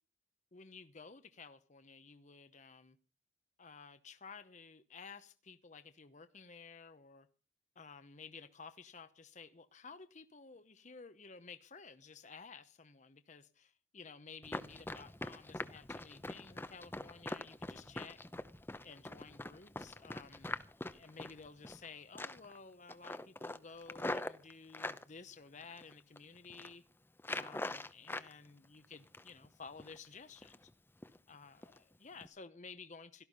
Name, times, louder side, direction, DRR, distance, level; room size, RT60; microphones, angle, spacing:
voice 1, 0.5-3.0 3.6-7.3 7.7-18.2 18.8-20.6 20.9-26.8 27.3-30.7 31.3-33.2, left 5 dB, 40° left, 0.9 m, -54 dB
Run, 14.4-21.9 22.2-22.6 22.9-25.0 25.6-26.2 26.4-26.7 27.2-28.3 28.6-29.5 29.8-30.0 30.4-30.7 31.0-31.2 31.6-31.8 32.2-32.3, left 2 dB, 10° left, 0.7 m, -43 dB
17.0 x 13.0 x 5.4 m
head